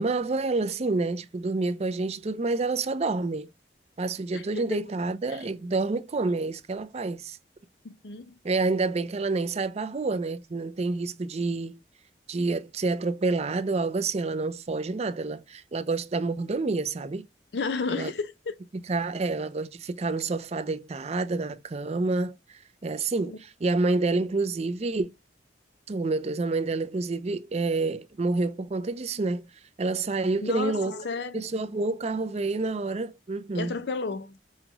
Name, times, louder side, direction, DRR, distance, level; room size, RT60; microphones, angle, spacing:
voice 1, 0.0-3.5 4.0-7.4 8.4-11.8 12.3-17.2 17.9-18.1 18.9-25.1 25.9-29.5 29.8-31.0 31.3-33.7, right 3 dB, 40° right, 0.5 m, -28 dB
voice 2, 4.3-4.8 5.3-5.5 7.8-8.3 17.5-18.6 23.3-23.4 30.4-31.4 33.5-34.4, left 4 dB, 70° left, 0.6 m, -33 dB
5.6 x 2.2 x 2.9 m
head